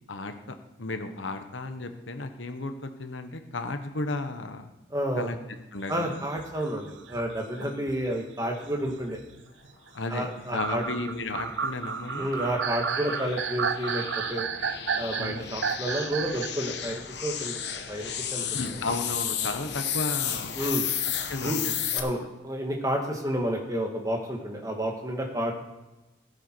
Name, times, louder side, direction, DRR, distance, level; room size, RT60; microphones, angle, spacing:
voice 1, 0.0-4.7 5.2-5.4 5.7-6.2 7.6-7.7 9.9-12.3 15.2-15.5 18.5-20.5 21.3-21.7, left 2 dB, 80° left, 7 dB, 1.1 m, -34 dB
voice 2, 4.9-5.3 5.9-9.2 10.1-11.1 12.1-14.0 14.3-14.5 15.0-18.8 20.5-20.9 21.4-21.6 21.9-25.5, equal, 15° right, 1 dB, 1.7 m, -30 dB
sound 1, 5.8-8.0 8.6-9.7 10.4-16.6, right 6 dB, 75° right, 0.6 m, -32 dB
sound 2, 10.4-22.0, left 9 dB, 60° left, 1.1 m, -34 dB
16.5 x 8.0 x 4.6 m, 1.0 s
head